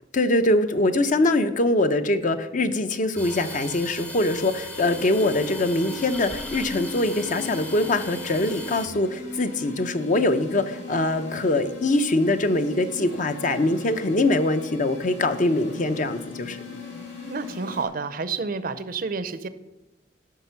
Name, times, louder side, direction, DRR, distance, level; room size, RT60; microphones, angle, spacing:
voice 1, 0.1-16.6, left 2 dB, 45° left, 9 dB, 0.7 m, -23 dB
sound 1, 3.2-8.9, left 1 dB, 5° left, 0.6 m, -38 dB
sound 2, 4.7-17.8, left 3 dB, 65° left, 4.0 m, -39 dB
voice 2, 17.3-19.5, right 4 dB, 50° right, 13 dB, 0.6 m, -29 dB
13.5 x 6.0 x 5.7 m, 0.99 s
head